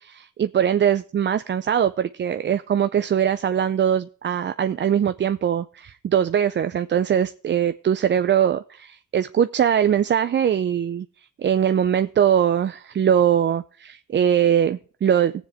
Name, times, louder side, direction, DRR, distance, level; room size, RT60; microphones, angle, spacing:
voice 1, 0.1-11.1 11.4-15.3, right 9 dB, 40° right, 11 dB, 0.5 m, -21 dB
17.5 x 7.5 x 3.5 m, 0.41 s
cardioid pair, 90°, 30 cm